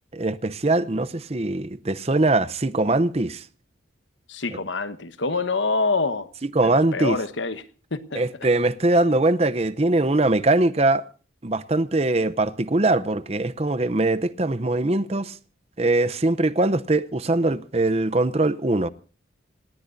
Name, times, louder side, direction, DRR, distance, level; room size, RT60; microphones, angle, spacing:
voice 1, 0.1-3.4 6.5-7.2 8.1-11.0 11.4-15.4 15.8-18.9, right 2 dB, 30° right, 0.7 m, -22 dB
voice 2, 4.3-6.3 6.6-7.6 7.9-8.2, left 3 dB, 70° left, 1.3 m, -26 dB
27.5 x 18.5 x 2.7 m
head